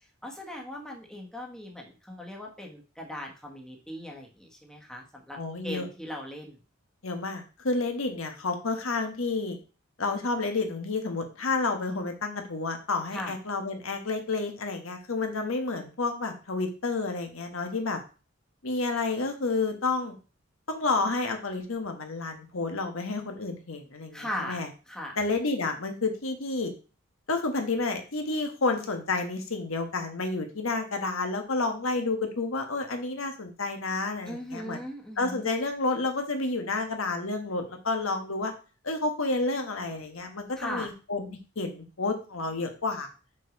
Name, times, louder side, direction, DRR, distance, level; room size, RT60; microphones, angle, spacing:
voice 1, 0.2-5.4 5.6-6.6 13.1-13.3 24.1-24.6 24.9-25.2 34.3-35.5 40.6-40.9, left 1 dB, 5° left, -1 dB, 1.4 m, -38 dB
voice 2, 5.4-5.9 7.0-9.6 10.0-18.0 18.6-20.1 20.7-24.7 25.2-26.7 27.3-34.8 35.2-38.5 38.8-43.1, left 3 dB, 75° left, 5 dB, 1.3 m, -30 dB
6.2 x 4.5 x 5.2 m, 0.34 s
head